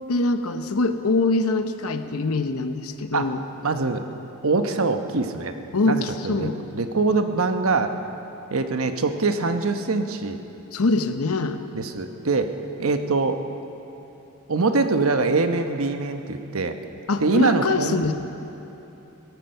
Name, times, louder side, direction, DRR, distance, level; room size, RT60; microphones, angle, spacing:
voice 1, 0.1-3.4 5.7-6.7 10.7-11.6 17.1-18.1, left 3 dB, 90° left, 9 dB, 0.8 m, -23 dB
voice 2, 3.6-4.0 4.4-5.5 5.8-7.9 8.5-10.4 11.7-12.5 12.8-13.4 14.5-16.8 17.2-18.0, right 3 dB, 75° right, 7 dB, 1.0 m, -23 dB
18.0 x 14.0 x 5.7 m, 3.0 s
head